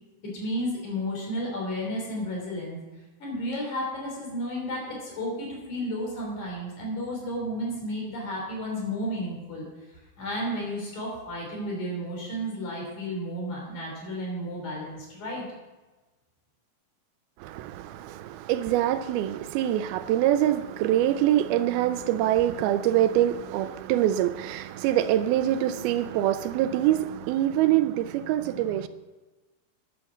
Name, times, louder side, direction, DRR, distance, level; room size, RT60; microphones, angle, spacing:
voice 1, 0.3-2.8 3.2-9.7 10.2-15.4, equal, 50° left, 4.7 m, -32 dB
voice 2, 17.4-28.9, right 12 dB, 85° right, 2.5 m, -24 dB
11.0 x 7.7 x 7.0 m
omnidirectional pair, 4.4 m